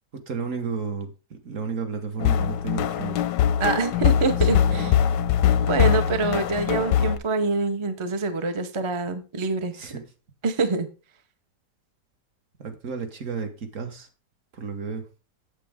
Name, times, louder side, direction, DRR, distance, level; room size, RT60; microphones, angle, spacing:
voice 1, 0.3-3.2 4.7-5.0 9.7-10.0 12.6-14.1 14.5-15.0, right 5 dB, 50° right, 1.5 m, -32 dB
sound 1, 2.2-7.2, left 9 dB, 85° left, 1.3 m, -22 dB
voice 2, 3.6-5.0 5.7-9.7 10.4-10.9, right 4 dB, 35° right, 0.5 m, -25 dB
8.4 x 7.5 x 3.5 m
omnidirectional pair, 1.8 m